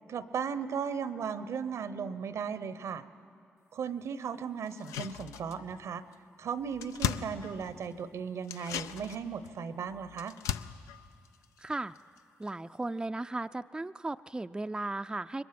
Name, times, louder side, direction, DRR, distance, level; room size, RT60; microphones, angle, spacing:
voice 1, 0.1-3.0 3.7-6.0 6.4-10.4, right 6 dB, 70° right, 14 dB, 0.8 m, -36 dB
sound 1, 4.7-5.8 6.1-6.2 6.5-8.0 8.4-12.2 12.5-12.6, left 10 dB, 85° left, 0.4 m, -38 dB
voice 2, 11.6-11.9 12.4-15.4, right 2 dB, 15° right, 10 dB, 0.4 m, -36 dB
21.5 x 20.5 x 5.9 m, 2.4 s
supercardioid pair, 45°, 5 cm